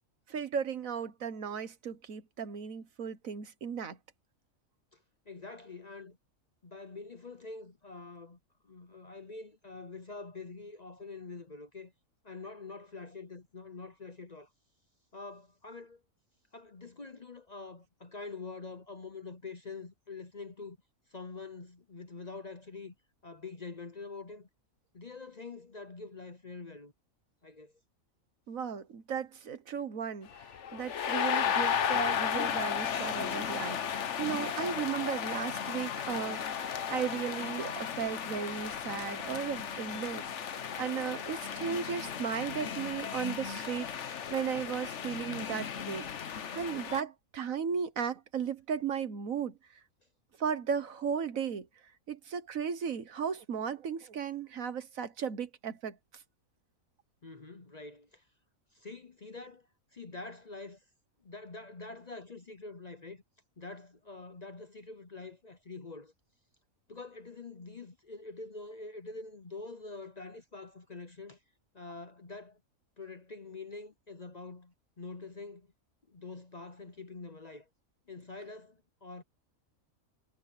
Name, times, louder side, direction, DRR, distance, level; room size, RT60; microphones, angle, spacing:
voice 1, 0.3-4.0 28.5-30.3 30.7-49.6 50.4-51.7 52.1-56.0, right 7 dB, 75° right, 1.7 m, -36 dB
voice 2, 4.9-6.2 6.6-11.9 12.2-14.5 15.1-16.0 16.5-20.8 21.1-22.9 23.2-24.5 24.9-26.9 27.4-27.7 57.2-58.3 58.7-60.8 61.2-63.2 63.6-66.1 66.9-71.4 71.7-72.6 73.0-75.7 76.1-77.7 78.1-79.2, left 3 dB, 35° left, 0.8 m, -45 dB
sound 1, 30.3-47.0, left 8 dB, 60° left, 1.2 m, -35 dB
omnidirectional pair, 1.4 m